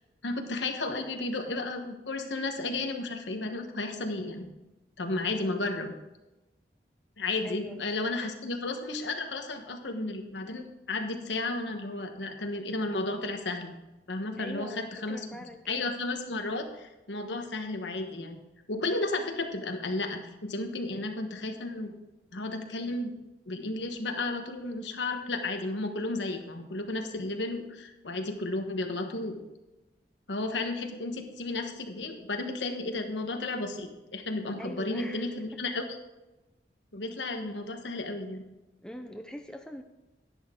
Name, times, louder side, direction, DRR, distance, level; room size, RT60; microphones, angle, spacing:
voice 1, 0.2-4.5 5.0-5.9 7.2-13.7 14.1-15.2 15.7-18.4 18.7-21.9 22.3-23.1 23.5-29.4 30.3-36.0 36.9-38.5, left 2 dB, 85° left, 5 dB, 1.3 m, -33 dB
voice 2, 7.4-7.8 14.4-15.8 34.6-35.4 38.8-39.8, equal, 5° left, 5 dB, 0.6 m, -43 dB
10.5 x 10.5 x 3.8 m, 1.0 s
head